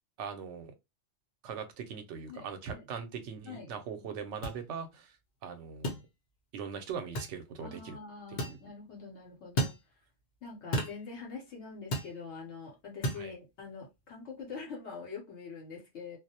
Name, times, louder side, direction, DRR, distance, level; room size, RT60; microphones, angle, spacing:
voice 1, 0.2-0.7 1.4-5.2 5.4-6.1 6.5-8.0 8.3-8.6 13.2-13.3, right 6 dB, 90° right, 0.9 m, -41 dB
voice 2, 2.3-2.8 3.4-3.7 4.0-4.1 7.6-9.7 10.4-16.2, left 5 dB, 75° left, 1.0 m, -45 dB
sound 1, 4.4-4.6 5.8-6.0 7.1-7.3 8.4-8.6 9.6-9.8 10.7-11.0 11.9-12.1 13.0-13.2, equal, 50° left, 0.7 m, -32 dB
2.3 x 2.0 x 2.7 m
omnidirectional pair, 1.2 m